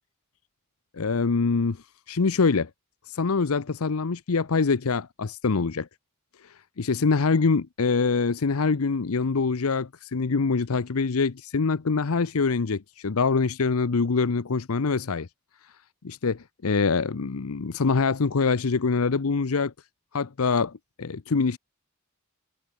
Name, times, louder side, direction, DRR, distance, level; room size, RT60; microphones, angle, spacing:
voice 1, 0.9-1.8 2.1-2.7 3.1-5.9 6.8-15.3 16.0-19.7 20.1-21.6, left 4 dB, 85° left, 0.7 m, -24 dB
head